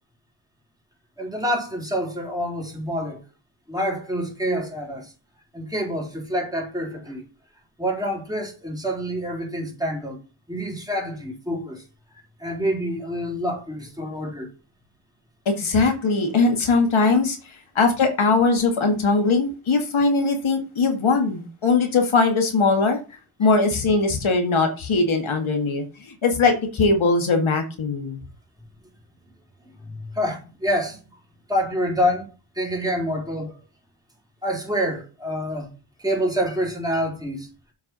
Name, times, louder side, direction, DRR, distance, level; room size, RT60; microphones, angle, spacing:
voice 1, 1.2-3.2 3.7-5.1 5.5-7.2 7.8-10.2 10.5-11.8 12.4-14.5 17.1-17.2 29.8-31.0 31.5-33.6 34.4-35.7 36.0-37.5, equal, 10° right, 4.0 m, -27 dB
voice 2, 15.5-17.4 17.8-23.0 23.4-28.2, left 3 dB, 70° left, 1.9 m, -20 dB
8.0 x 4.9 x 6.0 m
wide cardioid pair, 75°, 49 cm